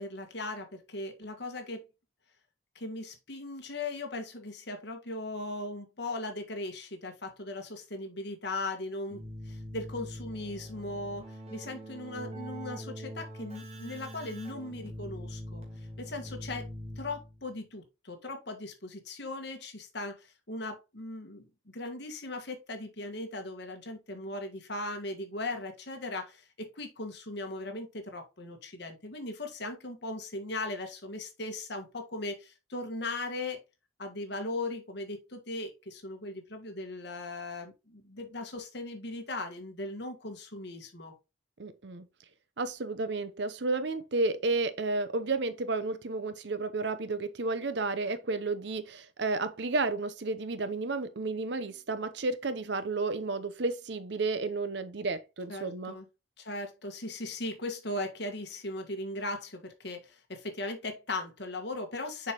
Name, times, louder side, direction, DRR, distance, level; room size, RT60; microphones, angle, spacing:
voice 1, 0.0-1.8 2.7-9.2 9.4-15.7 16.0-16.7 17.0-21.5 21.7-33.6 34.0-41.1 55.5-56.1 56.4-62.3, left 2 dB, 55° left, 1.6 m, -38 dB
Keyboard (musical), 9.1-17.5, equal, 30° right, 1.9 m, -43 dB
voice 2, 41.6-42.0 42.6-56.0, right 3 dB, 60° right, 0.7 m, -32 dB
6.8 x 5.0 x 2.9 m
head